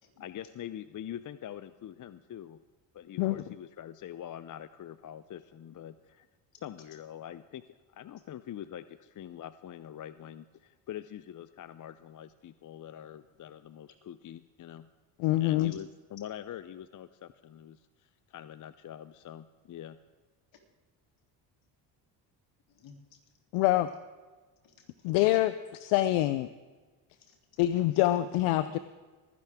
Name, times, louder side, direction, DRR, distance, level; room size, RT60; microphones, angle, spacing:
voice 1, 0.2-2.6 2.9-6.3 6.6-7.6 7.9-14.9 15.4-20.0, left 10 dB, 40° left, 14 dB, 0.6 m, -44 dB
voice 2, 15.2-15.7 23.5-23.9 25.0-26.5 27.6-28.8, left 15 dB, 80° left, 13 dB, 0.7 m, -25 dB
voice 3, 22.7-23.2 24.6-25.2 27.2-28.2, left 6 dB, 60° left, 3 dB, 3.2 m, -58 dB
24.0 x 11.0 x 3.6 m, 1.3 s
supercardioid pair, 65°, 50 cm